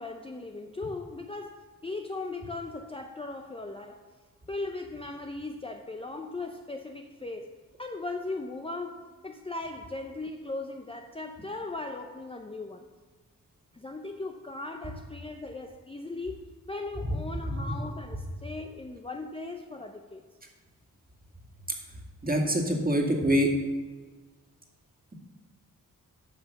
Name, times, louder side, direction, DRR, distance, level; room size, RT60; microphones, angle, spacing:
voice 1, 0.0-4.0 4.5-7.5 7.8-12.9 13.7-20.2, left 2 dB, 15° left, 4 dB, 0.6 m, -38 dB
voice 2, 22.2-23.5, equal, 25° right, 0 dB, 2.0 m, -24 dB
10.5 x 5.5 x 6.7 m, 1.4 s
cardioid pair, 75°, 36 cm